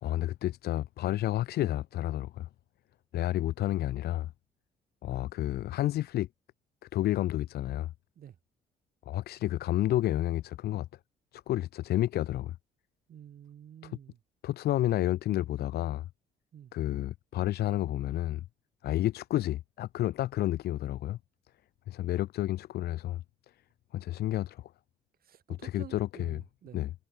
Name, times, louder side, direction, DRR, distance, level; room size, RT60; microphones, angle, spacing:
voice 1, 0.0-2.5 3.1-4.3 5.0-6.3 6.9-7.9 9.1-10.9 11.3-12.6 13.8-14.0 14.4-16.1 16.7-18.4 18.8-21.2 21.9-23.2 23.9-24.7 25.6-26.4 26.7-26.9, left 14 dB, 65° left, 0.4 m, -30 dB
voice 2, 13.1-14.2 16.5-16.7 25.2-26.8, right 9 dB, 60° right, 1.7 m, -49 dB
cardioid pair, 95°, 18 cm